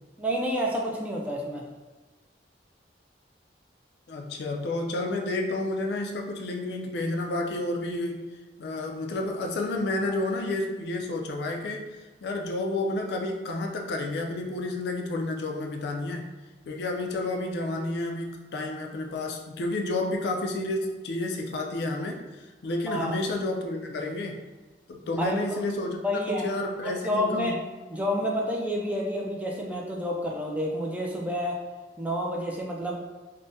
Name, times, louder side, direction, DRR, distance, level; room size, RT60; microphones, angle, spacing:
voice 1, 0.2-1.7 22.9-23.2 25.2-25.6 26.0-26.5 26.8-27.5 27.9-31.6 32.0-33.0, equal, 10° right, -2 dB, 0.3 m, -29 dB
voice 2, 4.1-8.3 8.6-11.9 12.2-16.2 16.6-24.4 24.9-27.5, left 2 dB, 65° left, 2 dB, 0.4 m, -30 dB
3.4 x 2.1 x 2.6 m, 1.2 s
head